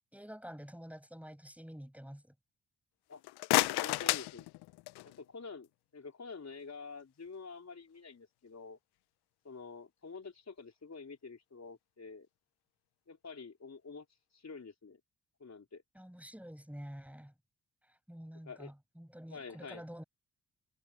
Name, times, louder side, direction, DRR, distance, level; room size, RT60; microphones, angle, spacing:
voice 1, 0.1-2.3 15.9-17.3 18.1-20.0, equal, 5° right, 7.3 m, -48 dB
sound 1, 3.1-5.2, left 20 dB, 85° left, 0.7 m, -32 dB
voice 2, 3.6-4.5 5.0-5.7 5.9-8.8 9.4-12.3 13.1-14.0 14.3-15.0 15.4-15.8 18.5-18.7 19.3-19.8, left 4 dB, 45° left, 4.4 m, -48 dB
hypercardioid pair, 40°, 39 cm